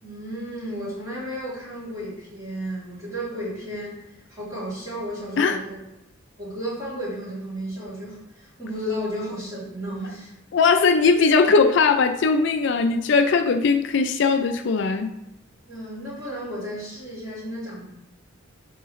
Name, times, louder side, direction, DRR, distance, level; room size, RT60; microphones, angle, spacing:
voice 1, 0.0-4.0 4.3-5.8 6.4-10.3 15.7-17.8, equal, 15° right, -8 dB, 2.8 m, -33 dB
voice 2, 10.5-15.1, left 4 dB, 55° left, 8 dB, 0.4 m, -19 dB
11.5 x 3.9 x 3.1 m, 0.89 s
head